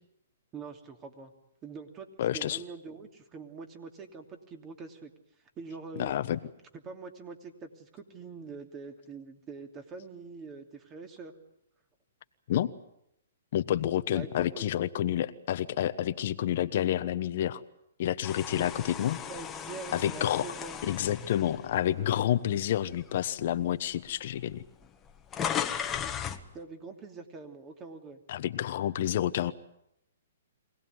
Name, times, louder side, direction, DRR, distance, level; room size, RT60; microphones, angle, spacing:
voice 1, 0.5-1.3 1.6-5.1 5.6-6.1 6.7-11.3 14.1-14.6 18.6-20.9 26.5-28.2, right 4 dB, 25° right, 5 dB, 2.9 m, -44 dB
voice 2, 2.2-2.6 6.0-6.4 12.5-12.7 13.5-17.6 18.0-19.2 19.9-20.5 20.9-24.6 28.3-29.5, left 11 dB, 55° left, 11 dB, 1.1 m, -29 dB
sound 1, 18.2-22.5 23.0-23.2 24.1-24.2 24.4-26.5, left 8 dB, 20° left, 1.5 m, -36 dB
24.5 x 18.5 x 9.5 m, 0.80 s
hypercardioid pair, 140°, 0 cm